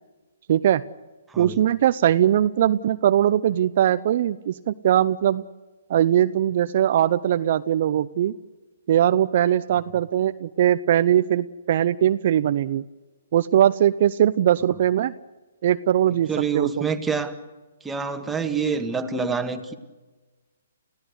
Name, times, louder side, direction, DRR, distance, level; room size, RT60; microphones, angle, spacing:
voice 1, 0.5-0.8 1.4-5.4 5.9-8.3 8.9-12.8 13.3-15.1 15.6-16.3 16.5-16.9, right 11 dB, 50° right, 12 dB, 0.6 m, -20 dB
voice 2, 1.3-1.6 16.3-17.3 17.8-19.7, right 5 dB, 10° right, 5 dB, 1.8 m, -27 dB
29.5 x 16.0 x 8.1 m, 1.3 s
figure-of-eight pair, 130°, 0 cm